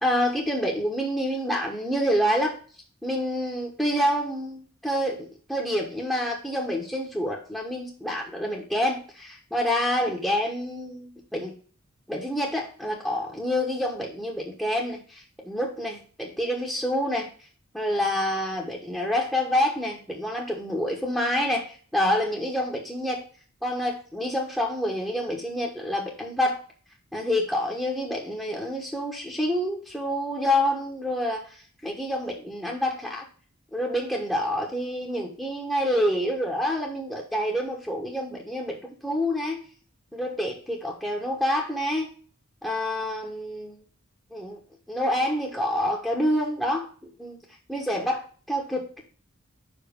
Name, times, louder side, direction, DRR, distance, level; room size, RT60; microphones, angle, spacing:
voice 1, 0.0-2.6 3.0-11.5 12.1-17.3 17.7-23.2 23.6-26.6 27.1-33.2 33.7-39.6 40.1-42.1 42.6-43.8 44.3-44.6 44.9-46.9 47.2-47.4 47.7-49.0, left 1 dB, 5° left, -1 dB, 1.2 m, -27 dB
5.6 x 5.1 x 5.2 m, 0.42 s
head